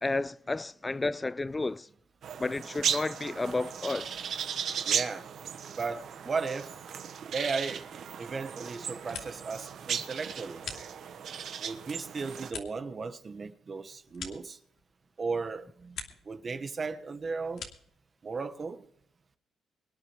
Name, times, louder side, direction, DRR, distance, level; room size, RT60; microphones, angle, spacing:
voice 1, 0.0-1.9 2.4-4.2, left 2 dB, 20° left, 0.5 m, -32 dB
sound 1, 2.2-12.5, right 8 dB, 65° right, 1.2 m, -36 dB
voice 2, 4.8-5.3 5.8-6.7 7.3-7.9 8.2-10.6 11.6-14.6 15.2-16.0 16.2-17.7 18.2-18.9, right 4 dB, 40° right, 1.3 m, -35 dB
sound 2, 8.8-9.6 9.9-11.4 11.8-15.1 15.4-16.4 16.7-18.0, left 6 dB, 75° left, 2.6 m, -46 dB
24.5 x 10.0 x 3.2 m
cardioid pair, 90°, 0 cm